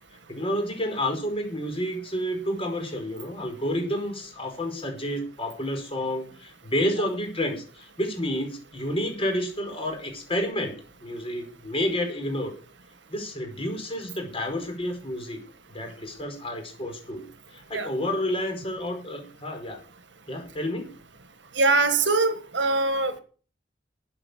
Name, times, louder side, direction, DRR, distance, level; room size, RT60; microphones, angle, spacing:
voice 1, 0.3-12.5 13.1-15.4 15.7-19.8 20.3-20.9, equal, 30° left, 4.9 m, -30 dB
voice 2, 21.5-23.2, right 3 dB, 70° right, 1.7 m, -22 dB
13.0 x 8.9 x 6.8 m
head